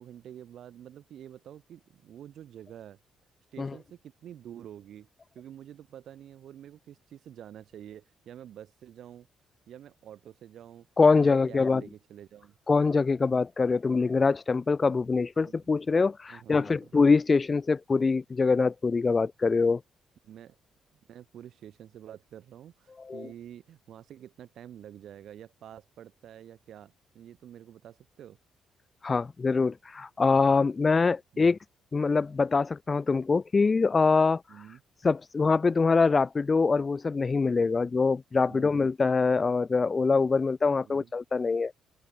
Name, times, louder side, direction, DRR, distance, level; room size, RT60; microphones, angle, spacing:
voice 1, 0.0-3.0 3.5-5.1 5.3-9.3 9.7-10.9 11.1-12.5 15.5-15.6 16.3-16.9 20.2-20.6 21.1-28.4 31.3-31.5 34.5-34.8 38.4-38.7 40.8-41.1, right 10 dB, 70° right, 6.1 m, -48 dB
voice 2, 11.0-11.8 12.7-19.8 23.1-23.3 29.0-31.6 31.9-34.4 35.0-41.7, left 4 dB, 30° left, 0.3 m, -24 dB
open air
cardioid pair, 90°, 0 cm